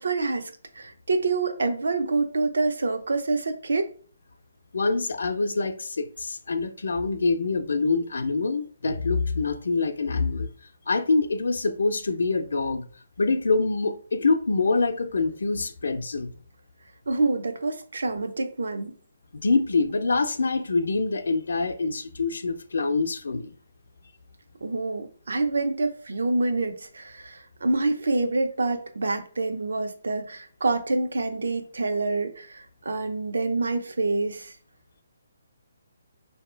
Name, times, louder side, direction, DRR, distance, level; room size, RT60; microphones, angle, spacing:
voice 1, 0.0-3.9 17.1-18.9 24.6-34.5, right 3 dB, 80° right, 0.6 m, -27 dB
voice 2, 4.7-10.5 10.9-12.8 13.2-16.3 19.3-23.6, left 3 dB, 75° left, 0.5 m, -25 dB
4.4 x 2.8 x 3.2 m
hypercardioid pair, 175°, 0 cm